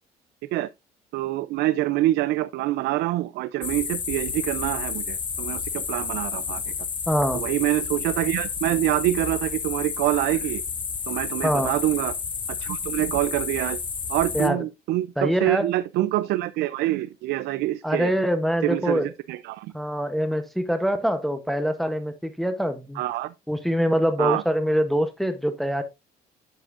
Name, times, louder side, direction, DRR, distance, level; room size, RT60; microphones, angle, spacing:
voice 1, 1.1-6.6 7.3-10.6 11.1-12.1 12.6-13.8 14.1-18.1 18.6-19.7 23.0-23.3 24.2-24.4, right 16 dB, 80° right, 0.4 m, -26 dB
sound 1, 3.6-14.5, left 6 dB, 30° left, 0.8 m, -31 dB
voice 2, 7.1-7.4 11.4-11.7 14.3-14.6 15.2-15.7 17.8-19.1 19.7-23.0 23.5-25.8, equal, ahead, 0.8 m, -24 dB
7.9 x 7.8 x 2.4 m
cardioid pair, 110°, 17 cm